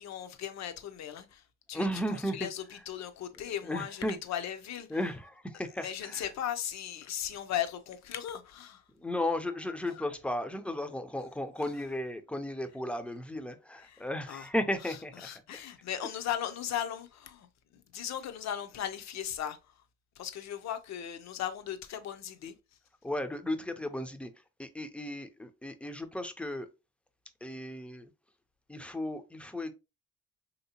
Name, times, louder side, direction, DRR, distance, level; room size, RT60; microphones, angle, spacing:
voice 1, 0.0-5.0 5.8-8.8 9.9-10.1 13.8-14.5 14.8-19.8 20.2-22.6, left 10 dB, 65° left, 0.6 m, -38 dB
voice 2, 1.7-2.5 3.6-4.2 4.9-6.2 9.0-15.6 23.0-24.3 24.6-26.7 27.4-28.1 28.7-29.7, left 1 dB, 5° left, 0.4 m, -35 dB
3.1 x 2.8 x 2.7 m
cardioid pair, 90°, 30 cm